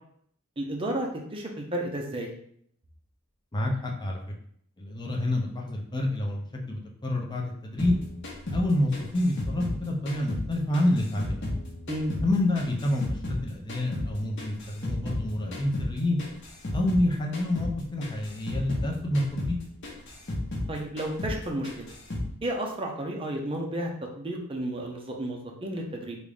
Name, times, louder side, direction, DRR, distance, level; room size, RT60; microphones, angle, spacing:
voice 1, 0.6-2.3 11.9-12.1 20.7-21.9 22.4-23.9 24.1-26.2, right 1 dB, 25° right, 0 dB, 0.7 m, -32 dB
voice 2, 3.5-4.2 4.8-8.0 8.5-11.5 12.2-16.2 16.7-19.6, left 1 dB, 20° left, 0 dB, 0.6 m, -28 dB
sound 1, 7.8-10.5 10.7-13.4 13.7-17.1 17.3-17.7 18.0-20.7 21.0-21.4 21.6-22.3, left 1 dB, 60° left, 0.9 m, -33 dB
3.5 x 2.6 x 3.3 m, 0.66 s
head